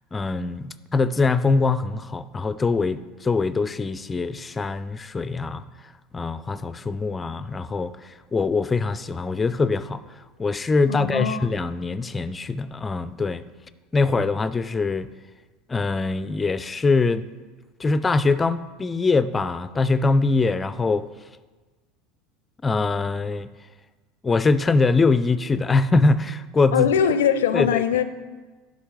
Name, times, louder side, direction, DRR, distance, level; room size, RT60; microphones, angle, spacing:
voice 1, 0.1-5.6 6.1-10.0 10.4-13.4 13.9-15.1 15.7-17.3 17.8-21.1 22.6-23.5 24.2-26.9 27.5-27.8, left 3 dB, 20° left, 15 dB, 0.4 m, -23 dB
voice 2, 10.9-11.5 26.7-28.0, left 8 dB, 80° left, 12 dB, 0.4 m, -21 dB
11.0 x 5.3 x 3.2 m, 1.3 s
hypercardioid pair, 80°, 0 cm